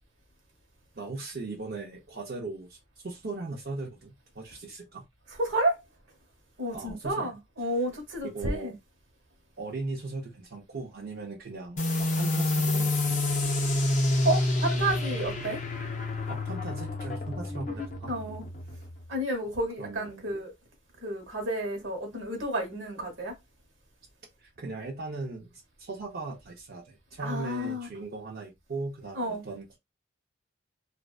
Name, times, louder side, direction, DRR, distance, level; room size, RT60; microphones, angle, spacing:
voice 1, 0.9-2.8 3.0-5.0 6.7-7.3 8.2-8.7 9.6-13.4 16.3-18.1 19.8-20.3 24.4-29.8, right 3 dB, 50° right, 0.5 m, -38 dB
voice 2, 5.4-5.8 6.6-8.7 14.2-15.6 18.1-18.5 19.1-20.5 21.0-23.3 27.2-27.9 29.1-29.4, right 1 dB, 65° right, 1.0 m, -31 dB
sound 1, 11.8-19.0, left 2 dB, 40° left, 0.5 m, -28 dB
2.5 x 2.2 x 2.3 m
head